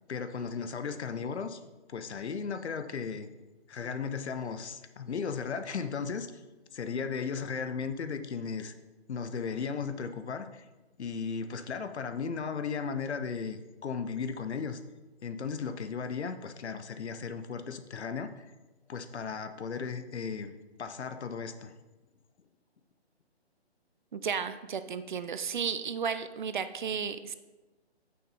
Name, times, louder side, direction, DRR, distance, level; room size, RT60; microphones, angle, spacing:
voice 1, 0.1-1.6 1.9-3.3 3.7-6.3 6.7-8.7 9.1-10.7 11.0-14.8 15.2-18.5 18.9-20.5 20.8-21.7, left 5 dB, 80° left, 10 dB, 0.7 m, -36 dB
voice 2, 24.1-27.3, right 6 dB, 50° right, 12 dB, 0.4 m, -33 dB
6.1 x 5.9 x 4.0 m, 1.1 s
hypercardioid pair, 150°, 33 cm